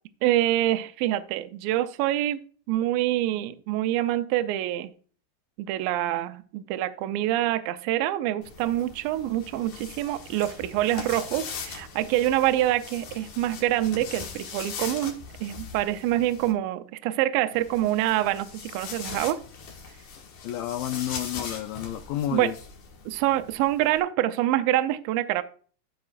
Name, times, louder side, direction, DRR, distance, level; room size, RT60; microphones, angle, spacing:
voice 1, 0.2-2.4 2.7-4.9 5.6-15.2 15.4-19.4 22.3-22.5 23.1-25.4, right 14 dB, 80° right, 2.2 m, -26 dB
sound 1, 8.4-16.5 17.5-24.0, left 6 dB, 65° left, 2.8 m, -41 dB
voice 2, 20.1-22.6, left 12 dB, 80° left, 2.1 m, -31 dB
14.5 x 5.3 x 2.4 m
omnidirectional pair, 4.4 m